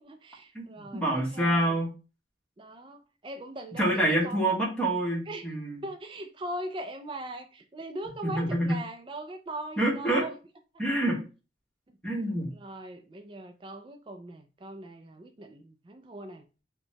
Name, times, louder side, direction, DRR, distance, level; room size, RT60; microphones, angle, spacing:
voice 1, 0.0-1.8 2.6-4.5 5.3-5.5 5.8-10.4 12.5-16.4, right 1 dB, 25° right, 0.3 m, -40 dB
voice 2, 0.9-1.9 3.8-5.8 8.3-8.8 9.8-10.3 10.8-11.2 12.0-12.5, right 1 dB, 5° left, 1.2 m, -26 dB
5.3 x 2.2 x 2.8 m
head